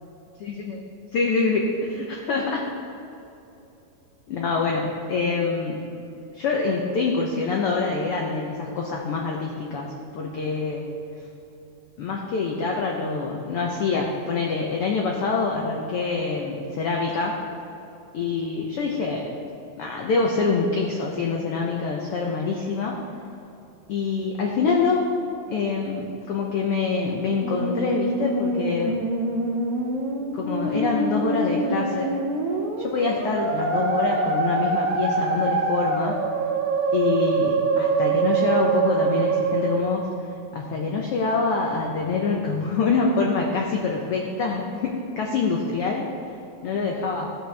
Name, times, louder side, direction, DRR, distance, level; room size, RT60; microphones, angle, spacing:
voice 1, 0.4-0.8 1.1-2.6 4.3-5.9 6.3-10.9 12.0-17.4 18.1-19.3 19.8-23.0 23.9-25.0 25.5-29.0 30.3-32.1 32.8-36.2 36.9-40.1 40.5-46.1 46.6-47.4, left 4 dB, 75° left, -1 dB, 1.3 m, -25 dB
Musical instrument, 27.2-40.2, right 4 dB, 70° right, 1.4 m, -25 dB
16.0 x 6.7 x 3.4 m, 2.9 s
omnidirectional pair, 3.6 m